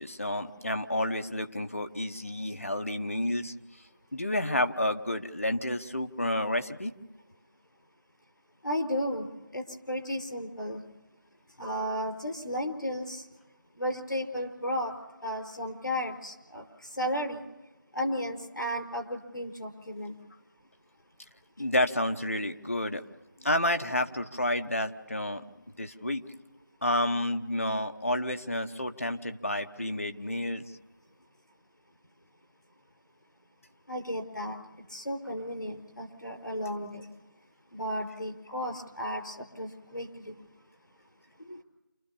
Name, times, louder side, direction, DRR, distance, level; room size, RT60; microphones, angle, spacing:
voice 1, 0.0-3.5 4.1-6.9 21.6-23.0 23.4-25.4 25.8-26.2 26.8-30.6 41.4-41.6, left 1 dB, 45° left, 7 dB, 1.2 m, -30 dB
voice 2, 8.6-9.3 9.5-10.8 11.6-13.2 13.8-14.9 15.2-16.6 17.0-17.5 17.9-20.1 33.9-34.6 34.9-37.0 37.7-40.3, equal, 90° left, 3 dB, 4.8 m, -34 dB
28.5 x 13.5 x 7.2 m, 1.1 s
figure-of-eight pair, 175°, 10 cm